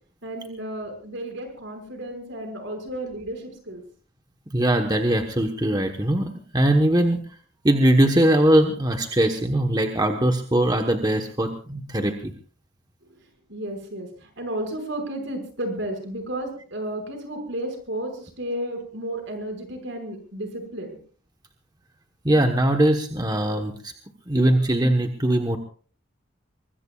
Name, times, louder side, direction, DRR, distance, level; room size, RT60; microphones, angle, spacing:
voice 1, 0.2-3.8 13.5-14.1 14.4-21.0, right 1 dB, 65° right, 4 dB, 5.7 m, -32 dB
voice 2, 4.5-7.2 7.6-12.3 22.2-23.9 24.3-25.6, right 1 dB, 20° right, 4 dB, 1.1 m, -21 dB
24.0 x 21.0 x 2.4 m, 0.41 s
head